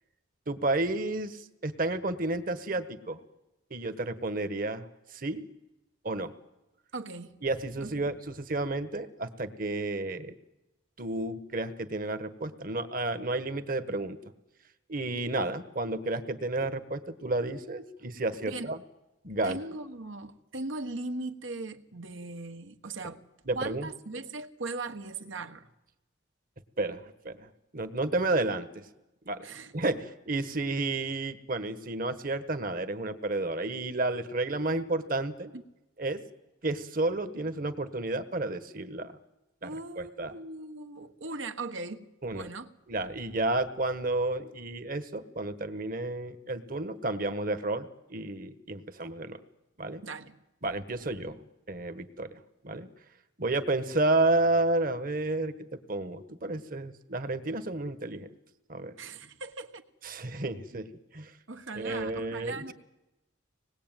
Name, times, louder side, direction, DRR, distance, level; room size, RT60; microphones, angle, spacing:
voice 1, 0.5-3.2 3.7-4.9 5.1-5.4 6.0-6.3 7.4-10.3 11.0-14.2 14.9-18.8 19.2-19.6 23.5-23.9 26.8-28.8 29.2-29.5 29.7-35.5 36.0-36.2 36.6-39.1 39.6-39.7 40.0-40.4 42.2-42.5 42.9-49.4 49.8-50.0 50.6-51.4 51.7-52.9 53.4-55.5 55.9-58.3 58.7-58.9 60.0-60.9 61.1-61.3 61.7-62.7, right 2 dB, 45° right, 1.5 m, -31 dB
voice 2, 6.9-7.4 7.8-8.1 18.4-18.7 19.4-23.2 23.5-25.7 29.4-29.7 35.5-35.6 39.6-42.1 42.3-42.7 50.0-50.4 59.0-59.8 60.7-60.8 61.5-62.7, right 3 dB, 75° right, 1.5 m, -39 dB
25.5 x 20.0 x 9.1 m
head